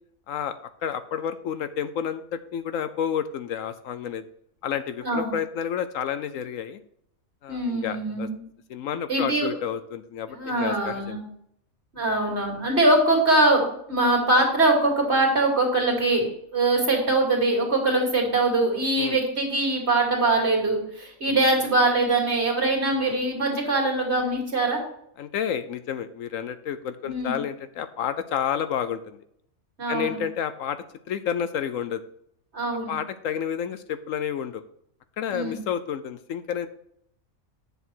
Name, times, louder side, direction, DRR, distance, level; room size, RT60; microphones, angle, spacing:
voice 1, 0.8-4.2 4.6-6.8 7.4-8.3 8.7-11.2 19.0-19.2 21.3-21.4 25.2-29.2 29.9-30.8 31.1-32.0 32.9-34.6 35.2-36.7, left 8 dB, 75° left, 11 dB, 1.0 m, -30 dB
voice 2, 7.5-8.4 9.1-9.5 10.3-11.2 11.9-16.3 16.5-24.8 27.0-27.4 29.8-30.2 32.5-32.9 35.3-35.6, right 2 dB, 50° right, -1 dB, 2.8 m, -22 dB
8.6 x 6.7 x 4.5 m, 0.70 s
omnidirectional pair, 1.5 m